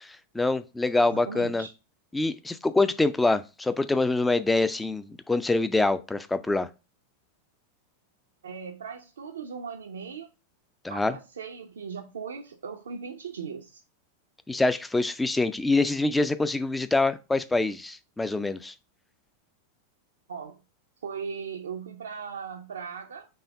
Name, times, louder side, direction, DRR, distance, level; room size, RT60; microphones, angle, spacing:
voice 1, 0.3-1.7 2.1-6.7 10.8-11.1 14.5-18.7, left 2 dB, 10° left, 0.3 m, -25 dB
voice 2, 1.0-1.7 8.4-10.3 10.9-13.8 20.3-20.6 21.0-23.3, right 6 dB, 65° right, 0.5 m, -38 dB
4.3 x 3.4 x 3.3 m
figure-of-eight pair, 90°, 0 cm